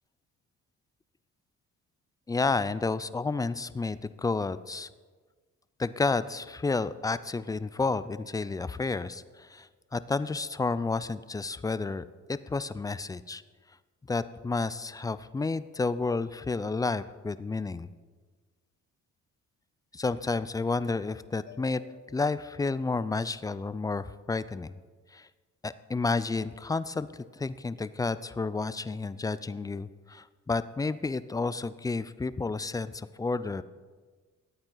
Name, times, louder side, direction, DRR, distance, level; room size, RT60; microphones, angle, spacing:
voice 1, 2.3-4.9 5.8-13.4 14.1-17.9 19.9-24.8 25.1-25.3 25.6-33.6, left 3 dB, 15° left, 15 dB, 0.3 m, -31 dB
Mallet percussion, 21.5-23.5, left 2 dB, 60° left, 1.2 m, -56 dB
13.0 x 8.8 x 3.9 m, 1.4 s
cardioid pair, 90°, 30 cm